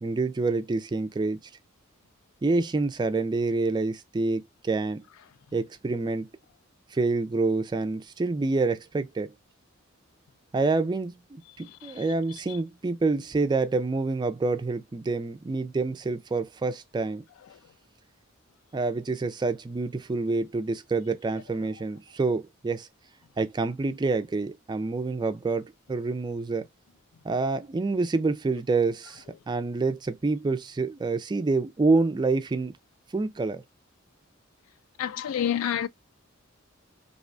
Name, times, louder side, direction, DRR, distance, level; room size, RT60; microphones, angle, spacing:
voice 1, 0.0-1.4 2.4-5.0 5.5-6.3 6.9-9.3 10.5-17.2 18.7-22.9 23.4-26.7 27.2-32.7 33.1-33.6, right 3 dB, 20° right, 0.3 m, -27 dB
voice 2, 11.6-12.0 17.5-17.6 35.0-35.9, left 9 dB, 90° left, 0.3 m, -29 dB
2.7 x 2.2 x 2.5 m
head